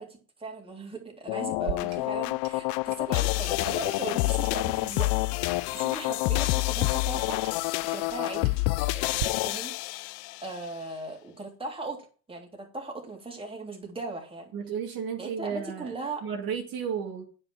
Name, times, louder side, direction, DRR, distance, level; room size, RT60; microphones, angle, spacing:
voice 1, 0.0-5.1 5.7-7.4 7.9-8.6 8.9-9.7 10.4-12.0 12.3-14.5 15.2-16.2, right 3 dB, 10° right, 0 dB, 3.4 m, -38 dB
sound 1, 1.3-10.5, left 22 dB, 70° left, 0.6 m, -28 dB
Clock, 1.5-9.2, right 13 dB, 85° right, 1.1 m, -44 dB
voice 2, 14.5-15.9 16.2-17.2, right 7 dB, 50° right, 1 dB, 2.3 m, -33 dB
9.7 x 5.4 x 7.3 m, 0.39 s
supercardioid pair, 105°, 44 cm